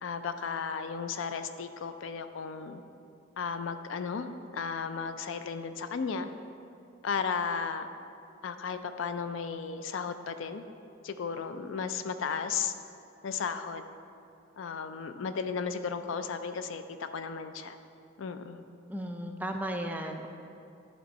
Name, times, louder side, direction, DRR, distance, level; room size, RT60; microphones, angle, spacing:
voice 1, 0.0-2.8 3.4-4.3 4.5-6.3 7.0-7.9 8.4-10.6 11.0-12.7 13.2-13.8 14.6-17.8 18.2-18.6, left 5 dB, 75° left, 10 dB, 0.4 m, -34 dB
voice 2, 18.9-20.3, right 1 dB, 10° right, 3 dB, 0.4 m, -35 dB
11.0 x 4.4 x 4.1 m, 2.5 s
head